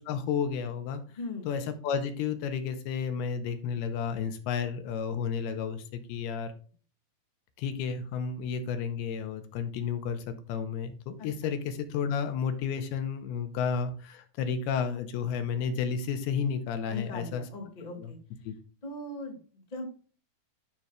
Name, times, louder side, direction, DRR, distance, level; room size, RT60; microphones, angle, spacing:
voice 1, 0.0-1.0 1.5-6.5 7.6-17.4 18.0-18.1 18.4-18.5, left 6 dB, 80° left, 8 dB, 2.6 m, -32 dB
voice 2, 1.1-1.5 11.2-11.5 16.9-18.2 18.8-19.8, left 2 dB, 25° left, -1 dB, 0.8 m, -39 dB
12.0 x 5.6 x 2.4 m, 0.40 s
omnidirectional pair, 4.7 m